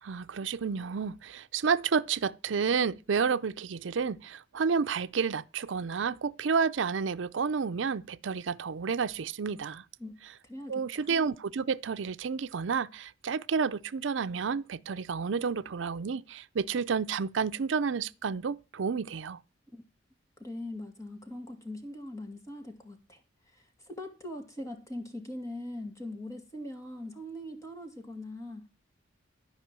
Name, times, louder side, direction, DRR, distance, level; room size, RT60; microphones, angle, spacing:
voice 1, 0.0-9.8 10.7-19.4, right 5 dB, 75° right, 0.5 m, -30 dB
voice 2, 10.4-11.1 19.7-19.8 20.4-23.2 23.5-28.7, left 1 dB, 15° left, 2.3 m, -41 dB
13.0 x 5.4 x 7.5 m
head